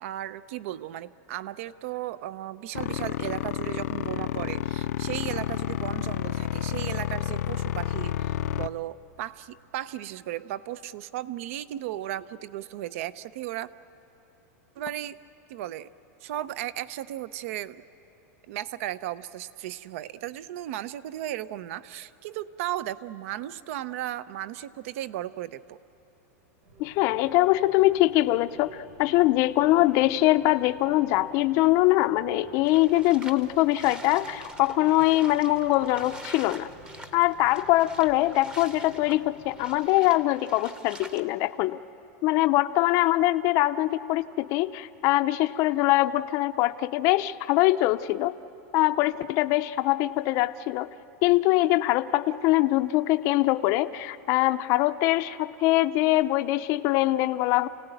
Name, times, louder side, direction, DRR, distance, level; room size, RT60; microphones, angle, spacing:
voice 1, 0.0-13.7 14.8-15.2 15.5-15.9 16.2-17.8 18.5-25.8, right 13 dB, 60° right, 16 dB, 0.6 m, -35 dB
sound 1, 2.8-8.7, left 13 dB, 80° left, 0.5 m, -30 dB
Rain, 26.6-39.8, equal, 80° right, 7.1 m, -52 dB
voice 2, 26.8-36.7 37.1-41.8 42.2-48.3 48.7-50.9 51.2-57.7, left 17 dB, 40° left, 10 dB, 0.5 m, -23 dB
sound 2, 32.6-41.2, right 1 dB, 10° right, 0.9 m, -46 dB
28.5 x 17.5 x 9.1 m, 2.8 s
supercardioid pair, 160°, 8 cm